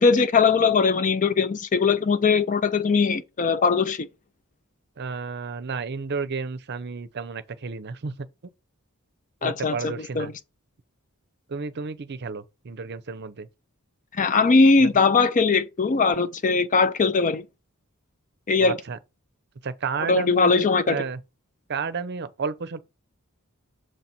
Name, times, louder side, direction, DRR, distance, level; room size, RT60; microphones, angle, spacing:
voice 1, 0.0-4.1 9.4-10.3 14.2-17.4 18.5-18.8 20.1-21.0, left 4 dB, 35° left, 0.5 m, -20 dB
voice 2, 5.0-8.1 9.4-10.3 11.5-13.5 14.8-14.9 18.6-19.0 19.6-21.2 21.7-22.8, right 5 dB, 50° right, 0.6 m, -32 dB
6.5 x 4.0 x 4.3 m
head